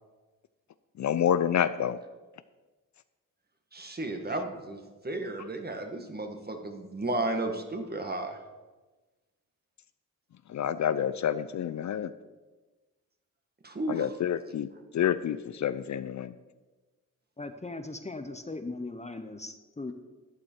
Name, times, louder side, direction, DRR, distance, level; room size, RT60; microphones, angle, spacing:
voice 1, 1.0-2.0 10.5-12.1 13.9-16.3, left 9 dB, 55° left, 13 dB, 0.5 m, -28 dB
voice 2, 3.7-8.4 13.6-14.1, right 2 dB, 30° right, 5 dB, 1.6 m, -33 dB
voice 3, 17.4-19.9, left 2 dB, 20° left, 8 dB, 0.8 m, -39 dB
12.0 x 8.6 x 4.6 m, 1.2 s
cardioid pair, 70°, 34 cm